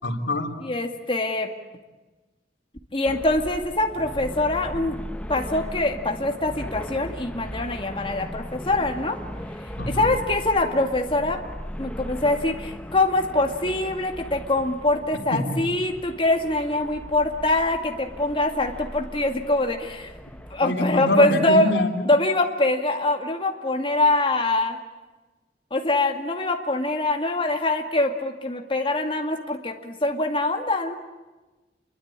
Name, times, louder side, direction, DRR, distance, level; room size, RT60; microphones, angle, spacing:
voice 1, 0.0-0.5 9.8-10.1 15.3-15.6 20.6-22.1, left 1 dB, 90° left, 2 dB, 3.5 m, -25 dB
voice 2, 0.6-1.5 2.9-5.0 5.3-9.2 9.9-11.4 11.8-20.1 20.5-21.7 22.1-24.8 25.7-31.0, left 2 dB, 30° left, 3 dB, 2.2 m, -24 dB
sound 1, 3.0-20.6, equal, 5° left, 1.1 m, -38 dB
28.5 x 23.0 x 8.9 m, 1.2 s
head